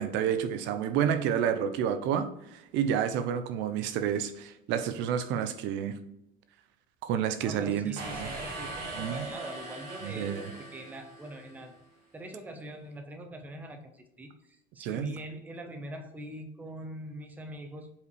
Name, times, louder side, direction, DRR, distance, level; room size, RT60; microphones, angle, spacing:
voice 1, 0.0-5.9 7.0-7.9 9.0-9.2 10.0-10.5 14.8-15.1, right 8 dB, 65° right, 0.7 m, -29 dB
voice 2, 7.4-11.7 12.1-17.9, right 1 dB, 10° right, 0.6 m, -43 dB
sound 1, 8.0-11.7, right 2 dB, 50° right, 2.0 m, -40 dB
5.5 x 5.1 x 4.7 m
cardioid pair, 160°, 20 cm